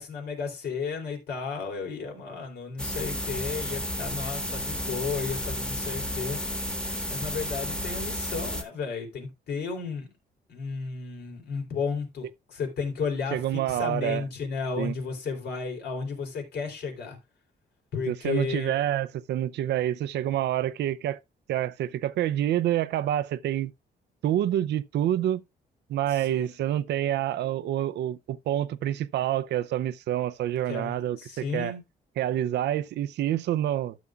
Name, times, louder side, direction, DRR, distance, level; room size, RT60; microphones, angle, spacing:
voice 1, 0.0-6.4 7.1-10.1 10.5-17.2 17.9-18.7 26.1-26.5 30.7-31.8, left 5 dB, 75° left, 3.5 m, -33 dB
sound 1, 2.8-8.6, equal, 5° left, 1.4 m, -32 dB
voice 2, 13.3-14.2 14.8-14.9 18.1-21.2 21.5-23.7 24.2-25.4 25.9-31.7 32.2-34.0, right 12 dB, 85° right, 0.5 m, -27 dB
12.5 x 7.1 x 2.4 m
cardioid pair, 120°, 17 cm